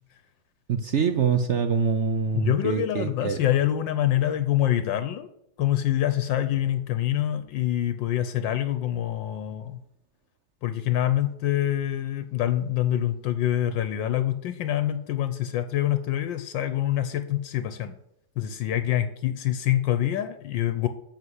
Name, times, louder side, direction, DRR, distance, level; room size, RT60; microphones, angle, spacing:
voice 1, 0.7-3.4, right 6 dB, 70° right, 8 dB, 0.6 m, -25 dB
voice 2, 2.3-5.3 5.6-9.8 10.6-18.0 18.4-20.9, left 12 dB, 75° left, 11 dB, 1.4 m, -25 dB
13.0 x 4.6 x 8.1 m, 0.76 s
omnidirectional pair, 2.1 m